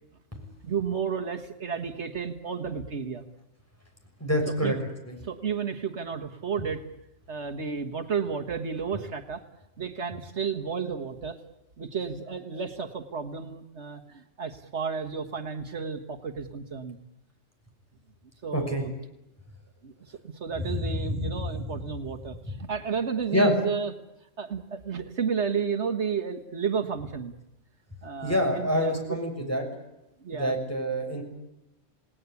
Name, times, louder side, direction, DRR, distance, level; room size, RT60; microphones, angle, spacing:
voice 1, 0.6-3.2 4.6-4.8 5.2-6.8 7.3-9.4 9.8-11.4 11.8-17.0 18.4-18.9 19.8-23.9 24.4-27.3 28.0-29.2 30.2-30.5, right 6 dB, 70° right, 5 dB, 1.8 m, -32 dB
voice 2, 4.2-4.7 5.0-5.1 18.5-18.9 20.7-21.2 23.3-23.5 28.2-29.6 30.3-31.2, equal, 10° left, 2 dB, 6.6 m, -26 dB
29.0 x 19.0 x 8.4 m, 0.91 s
omnidirectional pair, 1.2 m